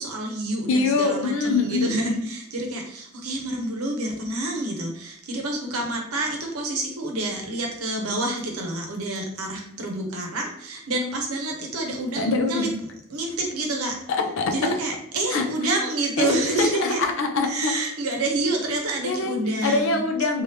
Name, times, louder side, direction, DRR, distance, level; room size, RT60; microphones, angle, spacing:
voice 1, 0.0-12.7 13.1-13.9 14.5-17.0 17.4-20.0, right 2 dB, 90° right, 2 dB, 0.7 m, -28 dB
voice 2, 0.7-2.1 12.2-12.7 14.2-14.5 15.3-15.4 16.2-17.7 19.0-19.4 19.6-20.4, left 3 dB, 60° left, 3 dB, 0.5 m, -24 dB
2.7 x 2.3 x 3.3 m, 0.71 s
head